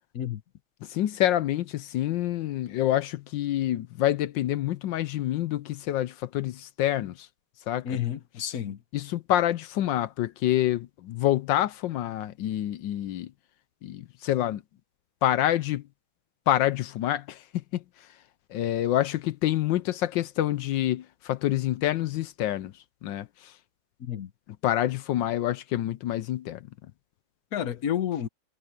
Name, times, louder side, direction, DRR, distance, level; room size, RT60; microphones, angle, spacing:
voice 1, 0.8-7.3 7.7-7.9 8.9-13.3 13.8-14.6 15.2-15.8 16.5-17.8 18.5-22.7 23.0-23.5 24.5-26.6, left 13 dB, 70° left, 1.2 m, -27 dB
voice 2, 7.8-8.8 24.0-24.3 27.5-28.3, left 10 dB, 50° left, 1.4 m, -30 dB
omnidirectional pair, 2.2 m